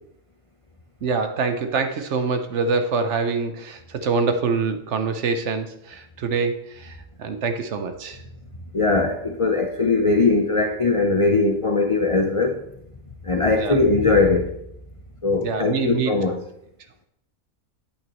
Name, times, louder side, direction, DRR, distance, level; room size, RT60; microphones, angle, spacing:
voice 1, 1.0-8.2 13.6-13.8 15.4-16.1, right 4 dB, 60° right, 1.0 m, -25 dB
voice 2, 8.7-12.6 13.2-14.6 15.2-16.4, left 3 dB, 55° left, 0.3 m, -20 dB
8.8 x 8.4 x 3.0 m
omnidirectional pair, 1.5 m